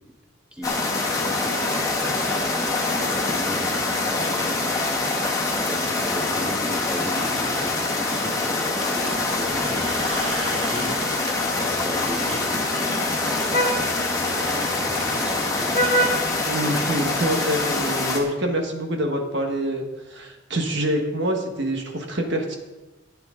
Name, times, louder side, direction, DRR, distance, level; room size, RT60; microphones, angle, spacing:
voice 1, 0.5-2.3 2.9-8.6 8.9-10.1 10.4-10.9 11.6-12.7 14.3-15.7, equal, 5° right, 0 dB, 1.5 m, -36 dB
sound 1, 0.6-18.2, left 2 dB, 15° left, 1.7 m, -25 dB
sound 2, 8.8-11.4 12.3-12.5 13.2-13.6 14.6-15.1 15.8-17.4, right 3 dB, 80° right, 1.7 m, -37 dB
Vehicle horn car horn honking, 9.2-17.3, right 1 dB, 45° left, 1.5 m, -31 dB
voice 2, 16.4-22.6, right 1 dB, 60° right, 2 dB, 1.5 m, -26 dB
14.5 x 9.0 x 3.8 m, 1.1 s
head